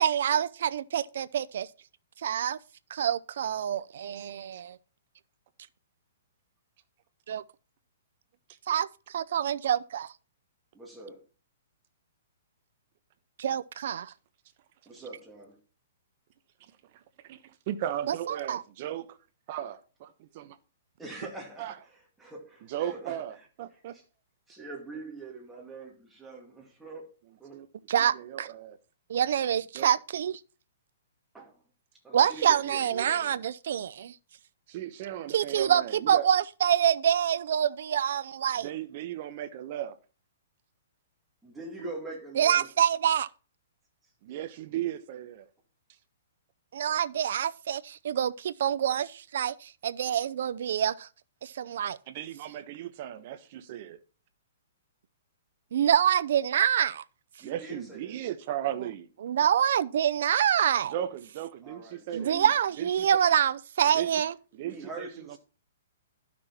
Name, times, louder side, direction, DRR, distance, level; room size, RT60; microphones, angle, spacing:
voice 1, 0.0-1.7 2.2-2.6 2.9-4.8 7.3-7.4 8.7-10.1 13.4-14.1 18.1-18.6 27.9-28.5 29.1-30.4 32.1-34.1 35.3-38.7 42.4-43.3 46.7-51.1 51.4-52.0 55.7-57.0 59.2-60.9 62.1-64.3, right 9 dB, 60° right, 0.5 m, -26 dB
voice 2, 10.7-11.2 14.9-15.6 21.0-23.2 23.9-24.0 24.5-27.1 27.4-27.6 31.3-31.6 32.0-33.4 41.4-42.7 50.1-50.2 57.4-58.2 61.6-62.5 64.6-65.4, right 2 dB, 5° right, 2.4 m, -44 dB
voice 3, 16.9-19.2 19.5-20.6 21.6-21.8 22.6-23.9 27.5-27.7 28.1-28.8 29.7-29.9 34.7-36.3 38.6-40.0 44.2-45.5 52.1-54.0 57.4-59.1 60.9-62.4 62.8-63.1 63.9-64.1 64.5-65.4, right 11 dB, 40° right, 1.1 m, -36 dB
12.0 x 6.1 x 4.3 m
hypercardioid pair, 160°, 0 cm